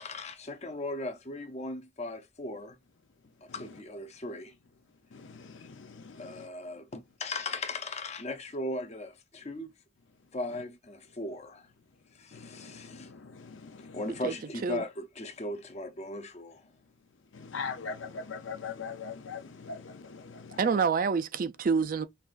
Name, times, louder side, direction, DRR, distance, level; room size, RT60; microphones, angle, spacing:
voice 1, 0.0-2.8 3.4-4.5 6.2-9.7 10.3-11.7 12.1-13.1 13.8-16.6, left 2 dB, 35° left, 0.7 m, -38 dB
voice 2, 5.1-6.5 12.3-14.0 17.3-20.6, left 5 dB, 70° left, 0.6 m, -41 dB
voice 3, 20.6-22.1, right 5 dB, 45° right, 0.4 m, -27 dB
5.6 x 2.4 x 2.5 m
head